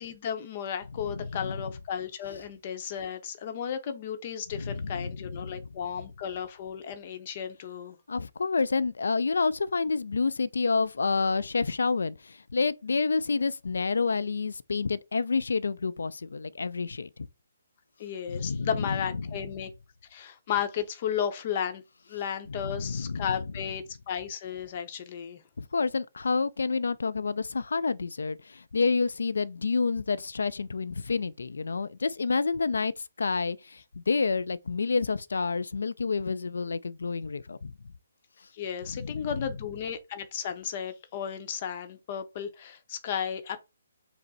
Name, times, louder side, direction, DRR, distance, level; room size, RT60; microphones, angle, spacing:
voice 1, 0.0-8.0 18.0-19.7 20.1-21.8 22.1-25.4 38.5-43.6, left 8 dB, 40° left, 0.7 m, -34 dB
voice 2, 1.2-1.6 4.5-5.1 5.4-5.7 8.1-17.3 18.3-19.4 22.5-23.4 25.6-32.9 33.2-37.7 38.9-39.3, left 4 dB, 80° left, 0.4 m, -29 dB
5.3 x 2.0 x 4.0 m
hypercardioid pair, 150°, 0 cm